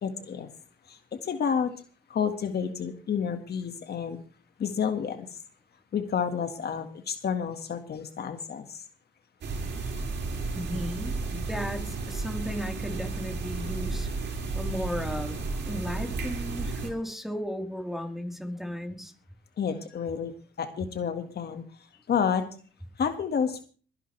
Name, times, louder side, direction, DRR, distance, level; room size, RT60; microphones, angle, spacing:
voice 1, 0.0-0.5 0.9-1.7 2.1-4.2 4.6-5.3 5.9-8.8 19.6-20.3 20.6-21.6 22.1-22.4 23.0-23.6, left 7 dB, 55° left, 7 dB, 1.9 m, -30 dB
sound 1, 9.4-16.9, right 3 dB, 60° right, 5.5 m, -33 dB
voice 2, 10.5-14.1 14.5-19.1, equal, ahead, 4 dB, 4.1 m, -35 dB
23.0 x 11.0 x 3.4 m, 0.39 s
cardioid pair, 90°, 20 cm